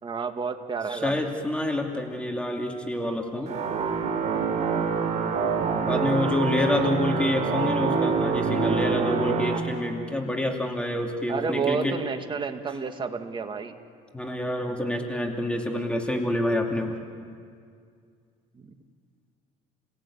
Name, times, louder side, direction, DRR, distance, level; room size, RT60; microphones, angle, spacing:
voice 1, 0.0-1.3 6.6-7.3 11.3-13.8 18.6-18.7, right 5 dB, 30° right, 6 dB, 2.0 m, -31 dB
voice 2, 0.9-3.5 5.9-12.0 14.1-16.9, left 1 dB, 5° left, 2 dB, 2.6 m, -27 dB
sound 1, 3.5-9.6, right 5 dB, 50° right, 3.7 m, -26 dB
30.0 x 17.5 x 8.7 m, 2.2 s
cardioid pair, 110°, 16 cm